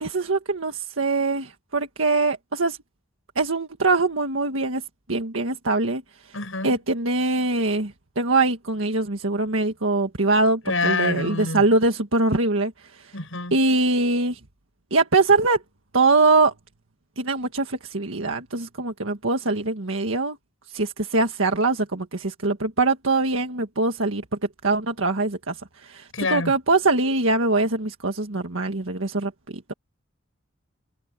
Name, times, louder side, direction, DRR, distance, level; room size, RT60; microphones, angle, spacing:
voice 1, 0.0-2.8 3.4-4.8 5.1-6.0 6.6-12.7 13.0-13.1 13.5-14.4 14.9-15.6 15.9-16.5 17.2-20.4 20.7-24.2 24.6-25.6 25.8-29.7, right 3 dB, 80° right, 1.7 m, -23 dB
voice 2, 6.3-6.8 10.7-11.7 13.1-13.6 26.1-26.5, left 3 dB, 80° left, 6.9 m, -26 dB
head